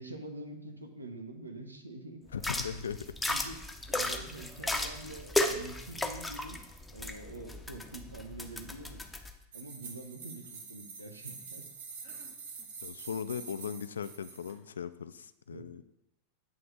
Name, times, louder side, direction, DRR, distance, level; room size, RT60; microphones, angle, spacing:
voice 1, 0.0-2.2 3.3-3.6 3.9-6.6 6.9-9.0 9.5-11.6 15.5-15.7, right 2 dB, 80° right, 5 dB, 0.8 m, -45 dB
voice 2, 2.3-3.1 12.8-15.8, left 7 dB, 70° left, 14 dB, 0.3 m, -38 dB
sound 1, 2.3-9.3, left 1 dB, 5° left, 0.6 m, -35 dB
sound 2, 9.5-14.5, right 5 dB, 60° right, 1.0 m, -46 dB
8.6 x 3.3 x 5.1 m, 0.88 s
figure-of-eight pair, 90°, 0 cm